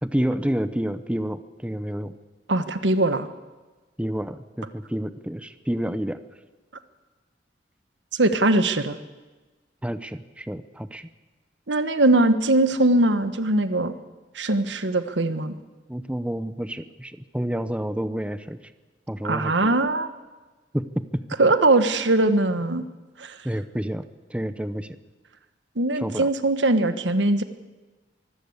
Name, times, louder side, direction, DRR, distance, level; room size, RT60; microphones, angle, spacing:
voice 1, 0.0-2.2 4.0-6.2 9.8-11.1 15.9-18.6 19.1-19.7 20.7-21.2 23.4-25.0 26.0-26.3, equal, 5° right, 12 dB, 0.8 m, -29 dB
voice 2, 2.5-3.3 8.1-9.0 11.7-13.9 14.3-15.5 19.2-20.1 21.4-22.9 23.2-23.4 25.7-27.4, right 2 dB, 85° right, 11 dB, 1.4 m, -21 dB
23.5 x 16.0 x 8.2 m, 1.2 s
head